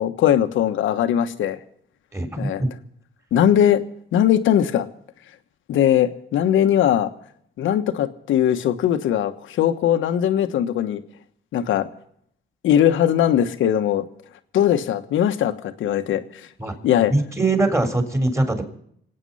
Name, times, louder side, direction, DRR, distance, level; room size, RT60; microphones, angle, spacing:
voice 1, 0.0-1.6 2.4-2.6 3.3-3.8 4.1-4.9 5.7-7.1 7.6-11.0 11.5-11.9 12.6-14.0 14.5-16.2 16.8-17.1, left 10 dB, 80° left, 9 dB, 1.3 m, -20 dB
voice 2, 2.1-2.7 16.6-16.7 17.1-18.6, right 2 dB, 15° right, 6 dB, 3.8 m, -22 dB
26.5 x 9.1 x 5.6 m, 0.67 s
cardioid pair, 90°, 20 cm